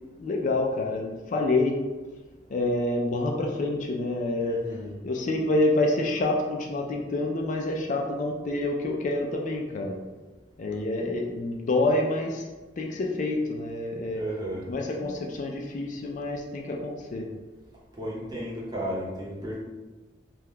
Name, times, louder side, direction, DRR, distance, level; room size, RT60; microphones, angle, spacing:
voice 1, 0.2-1.8 2.5-4.6 5.0-9.9 10.6-12.5 12.8-14.2 14.6-17.2, left 2 dB, 45° left, 0 dB, 0.4 m, -27 dB
voice 2, 4.4-5.0 14.1-14.7 18.0-19.6, equal, 25° right, -6 dB, 0.9 m, -34 dB
2.9 x 2.2 x 3.6 m, 1.2 s
head